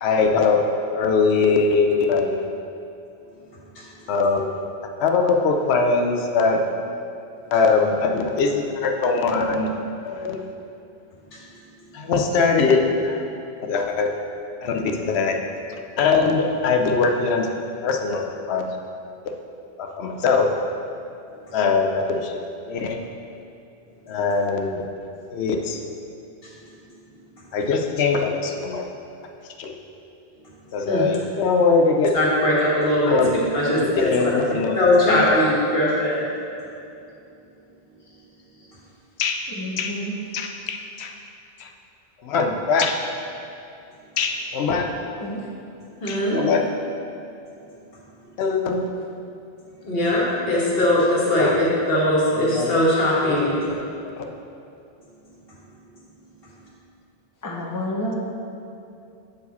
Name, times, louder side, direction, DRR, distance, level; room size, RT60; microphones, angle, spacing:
voice 1, 0.0-0.6 0.9-2.5 4.1-4.5 5.0-6.6 7.5-9.7 10.0-10.4 11.9-13.2 13.7-14.1 14.6-15.4 16.0-17.5 17.8-18.7 19.8-20.5 21.5-22.4 22.7-23.0 24.1-24.8 25.3-25.8 27.5-28.8 29.6-29.7 30.7-32.1 33.0-33.3 33.8-34.8 35.0-35.5 39.2-39.4 39.8-39.9 40.3-41.1 41.6-41.7 42.2-43.0 44.2-44.9 46.1-46.6 48.4-48.9 51.4-51.5 52.4-52.8 53.3-53.4 54.0-54.3, left 4 dB, 85° left, 3 dB, 0.9 m, -21 dB
voice 2, 32.1-33.2 33.5-34.3 34.7-36.3 46.0-46.4 49.8-53.8, left 1 dB, 65° left, -5 dB, 1.6 m, -20 dB
voice 3, 39.6-40.2 45.2-45.5 57.4-58.1, left 1 dB, 20° left, -3 dB, 0.8 m, -29 dB
8.0 x 4.7 x 4.1 m, 2.6 s
omnidirectional pair, 1.1 m